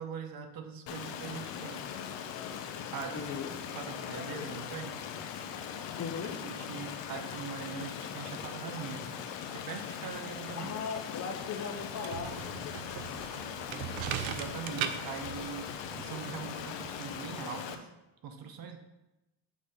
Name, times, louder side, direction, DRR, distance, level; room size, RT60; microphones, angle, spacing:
voice 1, 0.0-1.8 2.9-3.3 3.7-5.0 6.4-9.2 9.5-10.7 14.2-15.7 16.0-17.9 18.2-18.8, right 7 dB, 50° right, 6 dB, 1.0 m, -42 dB
Stream, 0.9-17.7, left 8 dB, 70° left, 0.8 m, -40 dB
voice 2, 3.1-3.5 6.0-6.4 10.6-12.3, left 6 dB, 40° left, 5 dB, 0.9 m, -37 dB
sound 1, 11.8-17.2, right 10 dB, 80° right, 0.7 m, -40 dB
7.2 x 4.4 x 5.0 m, 0.98 s
cardioid pair, 115°, 46 cm